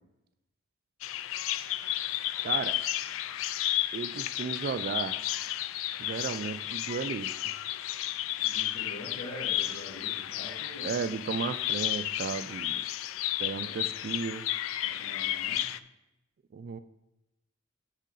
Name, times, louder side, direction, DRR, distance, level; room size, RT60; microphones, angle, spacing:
Bird vocalization bird call bird song, 1.0-15.8, left 13 dB, 70° left, 0.3 m, -32 dB
voice 1, 2.4-2.8 3.9-5.2 6.0-7.3 10.8-12.8 13.4-14.5 16.5-16.8, right 5 dB, 45° right, 12 dB, 0.3 m, -34 dB
voice 2, 8.4-10.9 13.6-13.8 14.8-15.6, left 1 dB, 90° left, -8 dB, 2.1 m, -44 dB
7.2 x 6.5 x 3.9 m, 0.91 s
head